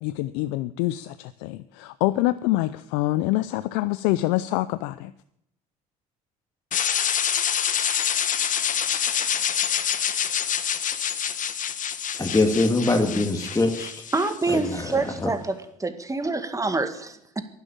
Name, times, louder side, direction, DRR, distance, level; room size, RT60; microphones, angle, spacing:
voice 1, 0.0-5.1, left 17 dB, 75° left, 14 dB, 0.5 m, -25 dB
sound 1, 6.7-14.7, left 8 dB, 45° left, 1.1 m, -26 dB
voice 2, 12.1-14.0 14.5-15.3, left 2 dB, 20° left, 2 dB, 2.1 m, -23 dB
voice 3, 14.1-17.4, right 3 dB, 20° right, 9 dB, 1.9 m, -27 dB
11.5 x 9.8 x 8.9 m, 0.76 s
hypercardioid pair, 60°, 18 cm